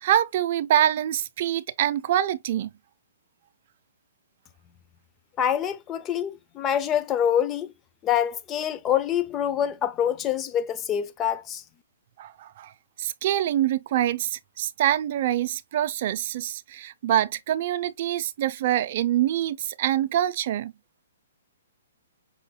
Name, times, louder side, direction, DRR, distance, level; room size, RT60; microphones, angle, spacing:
voice 1, 0.0-2.7 12.2-12.7 13.0-20.7, right 12 dB, 50° right, 0.6 m, -25 dB
voice 2, 5.4-7.7 8.0-11.6, left 9 dB, 20° left, 0.6 m, -25 dB
5.7 x 3.9 x 2.2 m
hypercardioid pair, 145°, 0 cm